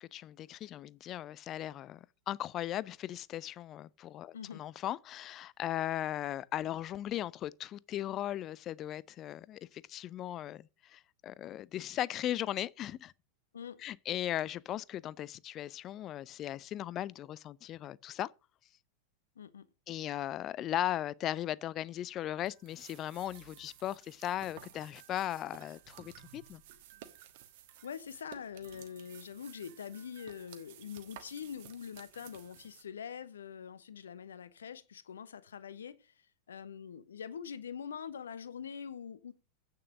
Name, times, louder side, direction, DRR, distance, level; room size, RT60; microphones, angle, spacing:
voice 1, 0.0-13.1 13.8-18.3 19.9-26.6, left 12 dB, 30° left, 0.4 m, -37 dB
voice 2, 4.3-4.6 13.5-13.8 19.4-19.7 27.8-39.3, left 7 dB, 65° left, 0.9 m, -44 dB
sound 1, 22.5-32.8, right 11 dB, 50° right, 1.4 m, -55 dB
8.7 x 6.7 x 6.1 m
figure-of-eight pair, 90°, 0 cm